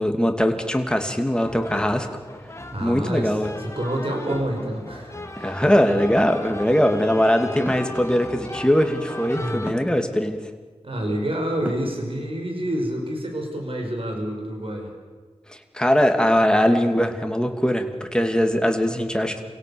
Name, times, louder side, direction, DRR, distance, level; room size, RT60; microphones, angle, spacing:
voice 1, 0.0-2.1 2.8-3.5 5.4-10.4 15.5-19.4, equal, 10° left, 5 dB, 2.6 m, -21 dB
sound 1, 1.3-9.7, left 1 dB, 25° left, 2.0 m, -37 dB
voice 2, 2.7-5.7 9.3-9.7 10.8-14.9, right 1 dB, 60° right, 2 dB, 5.2 m, -28 dB
sound 2, 5.7-6.0 7.7-8.0 9.7-10.0 11.6-12.0, equal, 15° right, 5.5 m, -33 dB
28.0 x 17.0 x 7.1 m, 1.4 s
wide cardioid pair, 55°, 11 cm